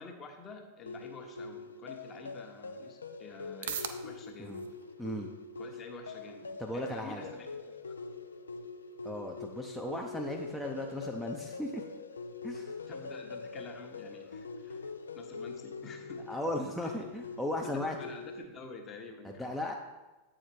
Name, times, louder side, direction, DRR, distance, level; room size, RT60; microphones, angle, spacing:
voice 1, 0.0-4.6 5.6-8.0 12.8-16.4 16.8-16.9 17.6-19.6, left 4 dB, 30° left, 3 dB, 1.1 m, -49 dB
sound 1, 0.9-18.4, left 3 dB, 75° left, 0.4 m, -44 dB
sound 2, 3.1-19.1, right 8 dB, 60° right, 0.5 m, -51 dB
voice 2, 5.0-5.3 6.6-7.3 9.0-11.8 12.4-12.7 14.7-14.8 16.3-18.0 19.2-19.7, left 1 dB, ahead, -1 dB, 0.6 m, -36 dB
8.1 x 4.9 x 4.5 m, 1.1 s
figure-of-eight pair, 90°, 0 cm